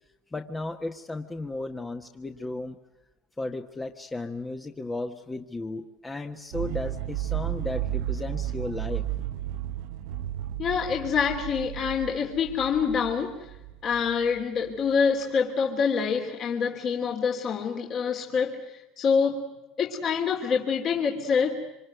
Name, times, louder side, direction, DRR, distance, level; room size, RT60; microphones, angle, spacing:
voice 1, 0.3-2.8 3.4-9.0, left 2 dB, 15° left, 4 dB, 1.4 m, -34 dB
sound 1, 6.5-14.7, right 12 dB, 75° right, 1.1 m, -33 dB
voice 2, 10.6-13.5 13.8-19.4 19.8-21.6, left 6 dB, 40° left, 1 dB, 3.1 m, -26 dB
26.5 x 26.0 x 8.0 m, 1.0 s
supercardioid pair, 120°, 0 cm